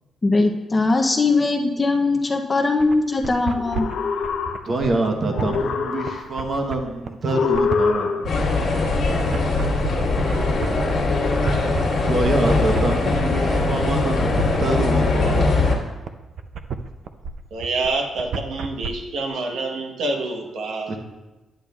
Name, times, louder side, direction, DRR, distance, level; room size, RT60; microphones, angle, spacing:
voice 1, 0.2-3.9, left 3 dB, 20° left, 3 dB, 0.6 m, -20 dB
sound 1, 2.8-18.9, right 5 dB, 55° right, 0.4 m, -32 dB
sound 2, 3.5-4.9 5.3-6.5 7.3-8.6, left 5 dB, 75° left, 0.7 m, -25 dB
voice 2, 4.7-8.3 12.0-15.5 20.9-21.0, right 2 dB, 35° right, 3 dB, 1.0 m, -25 dB
sound 3, 8.2-15.7, left 3 dB, 55° left, 1.6 m, -21 dB
voice 3, 17.5-21.0, right 2 dB, 75° right, 2 dB, 1.1 m, -27 dB
10.0 x 8.8 x 2.3 m, 1.1 s
cardioid pair, 160°, 0 cm